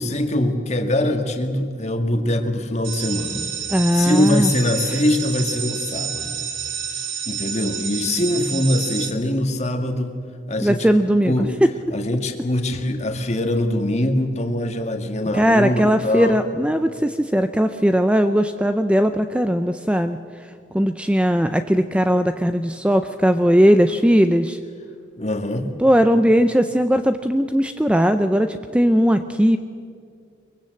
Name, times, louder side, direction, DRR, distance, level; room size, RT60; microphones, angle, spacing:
voice 1, 0.0-3.5 3.9-6.3 7.3-10.1 10.5-10.9 11.3-11.5 11.9-16.4 25.2-25.7, left 1 dB, 35° left, 5 dB, 1.9 m, -23 dB
sound 1, 2.8-9.1, right 7 dB, 85° right, 2.4 m, -29 dB
voice 2, 3.7-4.5 10.6-11.5 15.3-20.2 20.7-24.6 25.8-29.6, equal, 5° right, 9 dB, 0.5 m, -18 dB
23.0 x 23.0 x 7.8 m, 2.3 s
head